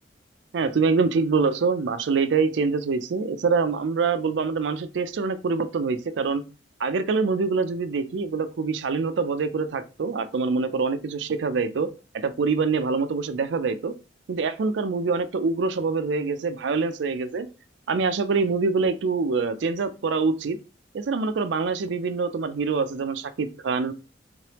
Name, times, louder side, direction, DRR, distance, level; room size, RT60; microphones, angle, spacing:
voice 1, 0.5-6.4 6.8-11.9 12.1-13.9 14.3-17.5 17.9-20.6 20.9-23.9, right 4 dB, 75° right, 0.4 m, -25 dB
3.7 x 3.2 x 2.9 m
head